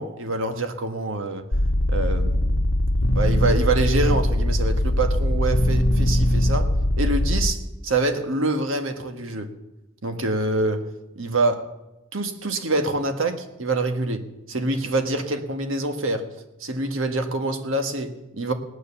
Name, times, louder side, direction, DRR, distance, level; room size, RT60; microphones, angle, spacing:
voice 1, 0.0-1.5 1.9-2.6 3.1-6.7 7.0-9.5 10.0-10.9 11.1-11.7 12.1-16.3 16.6-18.5, right 2 dB, 70° right, 6 dB, 1.5 m, -26 dB
sound 1, 1.5-7.5, left 1 dB, 75° left, 1.3 m, -21 dB
18.0 x 9.6 x 7.0 m, 0.97 s
head